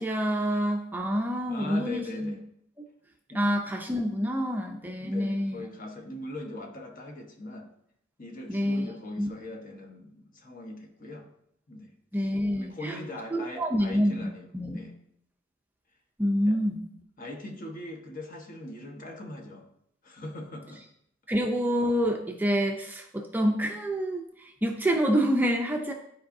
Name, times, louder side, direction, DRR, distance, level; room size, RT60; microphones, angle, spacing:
voice 1, 0.0-2.3 3.3-5.6 8.5-8.9 9.2-9.3 12.1-13.0 13.3-14.8 16.2-16.8 21.3-25.9, equal, 10° right, 2 dB, 0.5 m, -27 dB
voice 2, 1.5-2.4 3.3-3.5 5.0-7.7 8.2-11.3 11.7-11.9 12.5-14.9 16.4-16.6 17.2-19.7 20.0-20.8, left 1 dB, 45° left, 2 dB, 1.2 m, -41 dB
12.0 x 4.7 x 2.7 m, 0.73 s
head